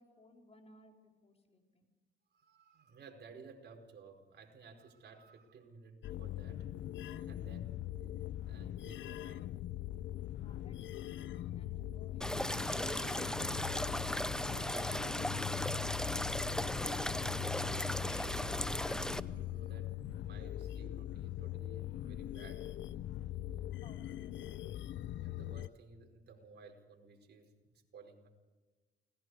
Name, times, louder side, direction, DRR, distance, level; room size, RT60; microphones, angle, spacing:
voice 1, 0.0-1.9 10.4-16.0 23.8-24.6, left 2 dB, 30° left, 3 dB, 4.3 m, -61 dB
voice 2, 2.3-6.7 7.2-7.9 8.4-9.6 11.0-11.5 16.4-18.5 19.0-22.7 25.2-28.3, right 4 dB, 55° right, 2 dB, 4.9 m, -57 dB
sound 1, 6.0-25.7, left 12 dB, 70° left, 0.6 m, -41 dB
sound 2, 12.2-19.2, left 1 dB, 5° left, 0.7 m, -36 dB
29.0 x 20.0 x 4.9 m, 1.2 s
cardioid pair, 90°, 20 cm